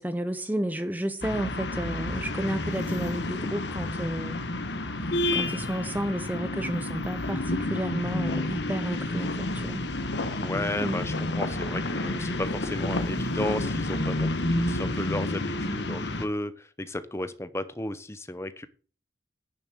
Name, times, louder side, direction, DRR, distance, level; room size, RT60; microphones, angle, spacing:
voice 1, 0.0-4.4 5.3-9.9 10.8-11.0, right 1 dB, 10° right, 0.7 m, -32 dB
sound 1, 1.2-16.3, left 2 dB, 65° left, 1.4 m, -30 dB
voice 2, 10.4-18.7, left 1 dB, 15° left, 0.9 m, -34 dB
9.9 x 7.1 x 6.3 m
head